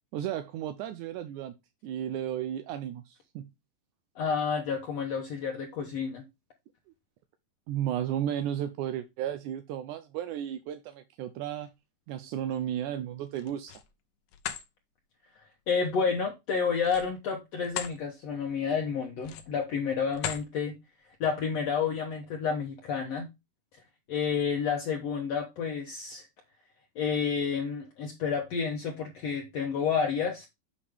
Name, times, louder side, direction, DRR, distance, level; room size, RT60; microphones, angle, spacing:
voice 1, 0.1-1.5 1.8-3.5 7.7-11.7 12.1-13.8, right 10 dB, 80° right, 1.9 m, -34 dB
voice 2, 4.2-6.3 15.7-20.8 21.2-23.3 24.1-26.3 27.0-30.5, left 6 dB, 60° left, 1.9 m, -30 dB
sound 1, 13.3-13.9 14.3-14.7 16.8-18.0 18.4-18.6 19.2-19.6 20.1-20.5, left 10 dB, 80° left, 2.7 m, -37 dB
8.4 x 4.9 x 3.5 m
omnidirectional pair, 4.0 m